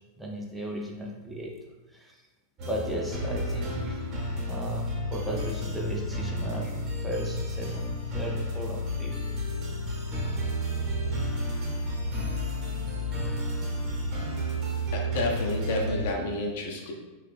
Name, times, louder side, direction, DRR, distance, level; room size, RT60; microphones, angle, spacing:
voice 1, 0.2-1.5 1.9-2.2 2.6-4.0 4.5-9.2, right 1 dB, 5° right, -1 dB, 0.5 m, -35 dB
sound 1, 2.6-16.1, equal, 35° right, 0.9 m, -31 dB
voice 2, 14.9-16.9, left 2 dB, 55° left, 1 dB, 0.5 m, -30 dB
3.1 x 2.3 x 3.3 m, 1.2 s
figure-of-eight pair, 90°, 0 cm